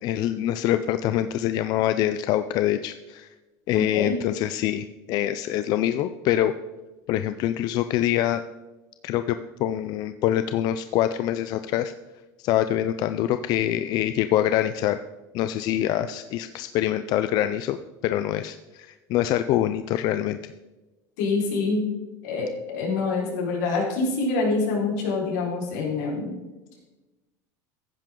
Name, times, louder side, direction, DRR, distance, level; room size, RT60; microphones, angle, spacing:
voice 1, 0.0-3.3 3.7-6.5 7.1-8.4 9.0-11.9 12.4-15.0 15.3-17.8 18.0-20.4, left 12 dB, 45° left, 11 dB, 0.5 m, -25 dB
voice 2, 3.7-4.2 21.2-21.9 22.2-26.4, left 3 dB, 80° left, -3 dB, 4.6 m, -26 dB
15.0 x 10.0 x 3.8 m, 1.1 s
cardioid pair, 150°, 9 cm